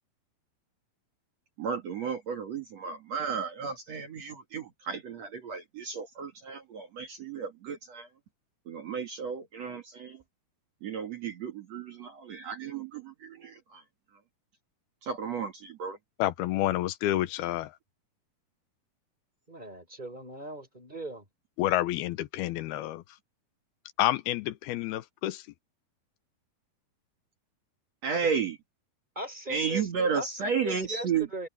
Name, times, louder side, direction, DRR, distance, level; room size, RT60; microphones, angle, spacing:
voice 1, 1.6-8.1 8.7-10.2 10.8-13.8 15.0-16.0 28.0-28.6 29.5-31.3, right 6 dB, 50° right, 2.6 m, -33 dB
voice 2, 16.2-17.7 21.6-23.0 24.0-25.4, left 15 dB, 90° left, 2.9 m, -29 dB
voice 3, 19.5-21.2 29.2-31.5, right 1 dB, 10° right, 5.5 m, -39 dB
omnidirectional pair, 4.3 m